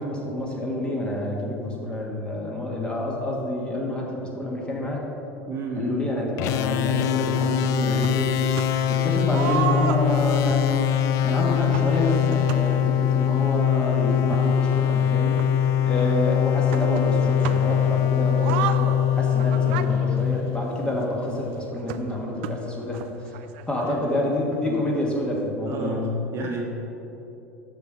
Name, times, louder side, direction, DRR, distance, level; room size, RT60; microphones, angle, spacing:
voice 1, 0.0-5.0 5.8-8.3 8.9-15.4 15.8-23.0 23.3-23.4 23.7-26.1, left 1 dB, 15° left, -2 dB, 1.4 m, -28 dB
voice 2, 5.5-6.0 16.0-16.1 23.8-24.3 24.5-24.8 25.7-26.0 26.3-26.6, right 3 dB, 35° right, 0 dB, 1.1 m, -32 dB
sound 1, 6.4-20.9, left 10 dB, 45° left, 0.4 m, -22 dB
sound 2, 8.0-8.9 9.3-13.1 13.8-13.9 14.2-16.1 16.7-17.9 18.3-21.1 21.9-23.9 24.2-24.3 24.5-24.6 25.3-25.4, right 10 dB, 55° right, 0.3 m, -33 dB
6.9 x 6.4 x 4.6 m, 3.0 s
figure-of-eight pair, 75°, 8 cm